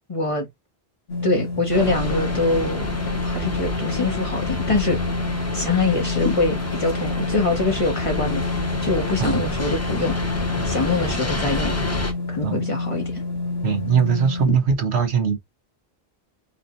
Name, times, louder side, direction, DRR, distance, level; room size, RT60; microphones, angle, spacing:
voice 1, 0.1-0.5 1.2-2.9 3.2-5.0 5.5-10.1 10.6-11.7 12.3-13.2 14.4-14.6, left 3 dB, 30° left, 1.3 m, -24 dB
sound 1, 1.1-14.5, left 3 dB, 75° left, 1.8 m, -28 dB
sound 2, 1.7-12.1, left 2 dB, 15° left, 0.8 m, -29 dB
voice 2, 13.6-15.4, right 7 dB, 80° right, 1.4 m, -21 dB
4.7 x 2.8 x 3.9 m
omnidirectional pair, 1.1 m